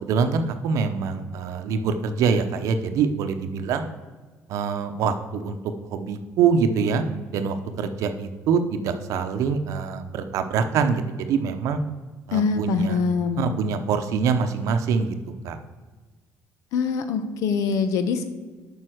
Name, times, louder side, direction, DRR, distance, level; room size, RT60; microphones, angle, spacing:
voice 1, 0.0-3.9 4.5-5.6 5.9-7.0 7.3-11.8 12.3-13.0 13.4-15.2 15.4-15.6, right 6 dB, 75° right, 8 dB, 0.7 m, -24 dB
voice 2, 12.3-13.5 16.7-18.3, left 5 dB, 80° left, 9 dB, 0.9 m, -24 dB
7.7 x 5.5 x 6.2 m, 1.3 s
cardioid pair, 130°, 5 cm